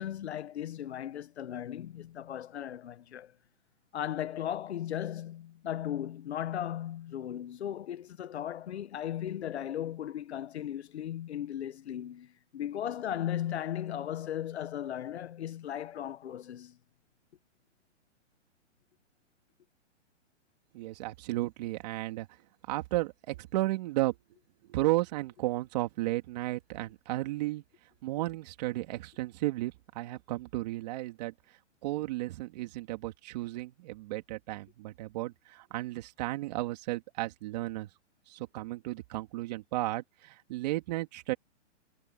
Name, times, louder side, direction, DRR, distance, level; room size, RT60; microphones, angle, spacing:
voice 1, 0.0-3.3 3.9-16.8, left 10 dB, 60° left, 1.2 m, -36 dB
voice 2, 20.7-22.3 22.7-24.1 24.7-27.6 28.0-31.3 31.8-37.9 38.3-41.3, right 18 dB, 35° right, 3.1 m, -33 dB
hypercardioid pair, 165°, 36 cm